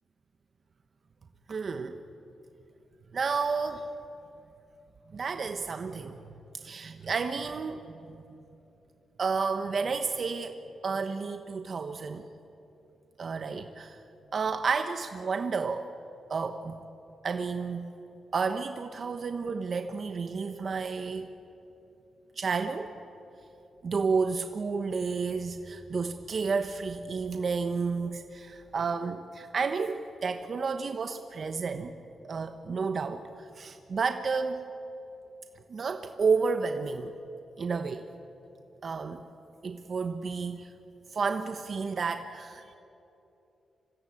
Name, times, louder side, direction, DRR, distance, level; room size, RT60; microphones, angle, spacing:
voice 1, 1.5-2.0 3.1-3.9 5.1-6.2 6.5-8.2 9.2-12.3 13.2-14.0 14.3-15.9 16.3-16.8 17.2-17.9 18.3-21.3 22.4-22.9 23.8-31.9 32.2-34.6 35.7-37.1 37.6-38.1 38.8-39.2 39.6-40.7 41.1-42.7, right 5 dB, 50° right, 7 dB, 1.1 m, -31 dB
26.5 x 17.0 x 8.7 m, 2.9 s
cardioid pair, 90°, 0 cm